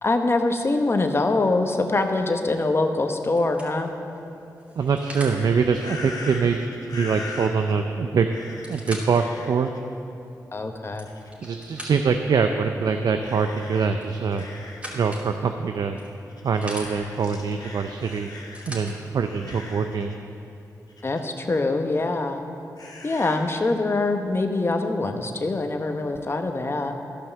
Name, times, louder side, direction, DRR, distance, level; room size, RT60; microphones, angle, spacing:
voice 1, 0.0-3.9 10.5-11.1 21.0-22.4 23.0-26.9, left 2 dB, 35° left, 5 dB, 1.0 m, -24 dB
sound 1, 3.4-5.4 7.5-7.6 7.8-7.9 8.4-9.2 9.8-9.9 10.7-12.3 14.0-15.3 16.0-16.9 18.1-19.0 19.9-20.0, equal, 20° right, 2.9 m, -40 dB
sound 2, 4.8-7.7 8.3-8.8 9.1-9.8 11.0-11.5 12.0-12.2 13.2-14.9 15.3-15.4 16.3-18.8 19.2-20.1 20.9-21.2 22.8-23.4, left 3 dB, 70° left, 1.5 m, -41 dB
voice 2, 4.8-6.6 6.9-8.3 8.7-9.7 11.4-14.4 14.9-16.0 16.4-18.3 18.7-20.2, right 5 dB, 70° right, 6 dB, 0.5 m, -24 dB
13.5 x 5.6 x 6.7 m, 2.8 s
cardioid pair, 55°, 7 cm